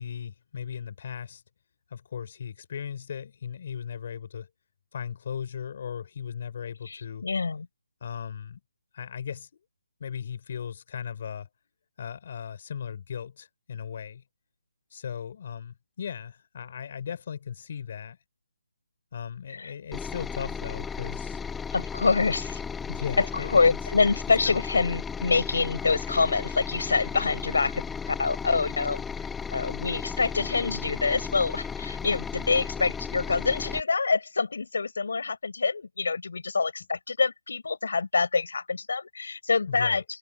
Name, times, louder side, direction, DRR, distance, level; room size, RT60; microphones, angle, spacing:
voice 1, 0.0-1.4 1.9-4.5 4.9-7.2 8.0-8.6 8.9-9.5 10.0-11.5 12.0-14.2 14.9-18.2 19.1-21.4 22.9-23.8 24.4-24.6 39.7-40.0, left 7 dB, 40° left, 4.8 m, -37 dB
voice 2, 6.9-7.7 19.6-19.7 21.7-22.6 23.2-23.3 23.5-29.0 29.5-40.0, left 4 dB, 70° left, 5.8 m, -26 dB
sound 1, 19.9-33.8, left 6 dB, 5° left, 0.9 m, -35 dB
hypercardioid pair, 170°, 0 cm